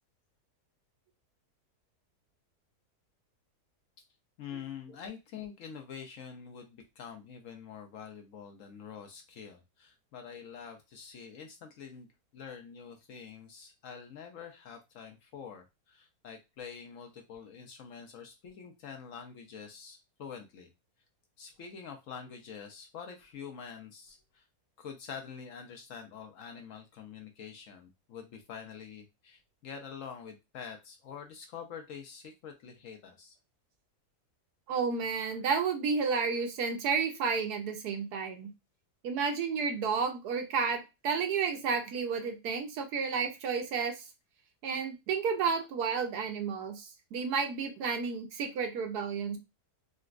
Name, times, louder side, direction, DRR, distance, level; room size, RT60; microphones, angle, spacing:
voice 1, 4.4-12.1 12.3-20.7 21.4-24.4 24.8-33.4, left 7 dB, 65° left, 4 dB, 0.9 m, -46 dB
voice 2, 34.7-38.5 39.0-44.0 44.6-49.4, right 5 dB, 75° right, 5 dB, 1.2 m, -31 dB
3.9 x 2.2 x 2.4 m, 0.23 s
omnidirectional pair, 1.7 m